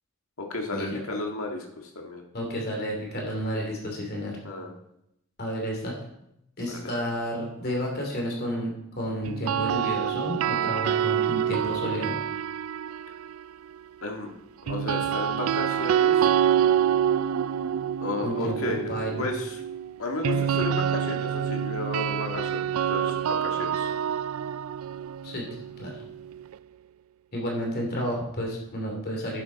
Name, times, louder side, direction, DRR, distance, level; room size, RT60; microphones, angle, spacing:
voice 1, 0.4-2.2 4.4-4.8 6.6-6.9 14.0-14.3 14.7-16.3 18.0-18.9 19.2-19.6 20.0-23.9, left 2 dB, 85° left, 2 dB, 1.8 m, -33 dB
voice 2, 2.3-4.3 5.4-5.9 6.6-8.7 9.0-12.1 18.2-19.3 25.2-25.4 25.8-26.0 27.3-29.4, equal, 50° left, 0 dB, 2.9 m, -31 dB
sound 1, 9.3-13.4 14.7-26.5, right 9 dB, 80° right, 0.3 m, -27 dB
11.0 x 10.5 x 4.1 m, 0.80 s
head